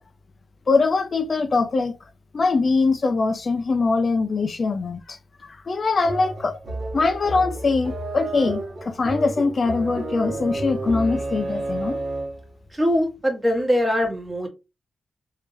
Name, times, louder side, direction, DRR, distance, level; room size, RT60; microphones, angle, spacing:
voice 1, 0.7-1.9 2.3-5.2 5.7-6.6 6.9-12.0, left 3 dB, 50° left, 0.4 m, -22 dB
sound 1, 6.0-12.5, right 2 dB, 55° right, 1.5 m, -31 dB
voice 2, 12.7-14.5, equal, 20° right, 1.5 m, -22 dB
3.4 x 2.7 x 3.2 m
cardioid pair, 65°, 0 cm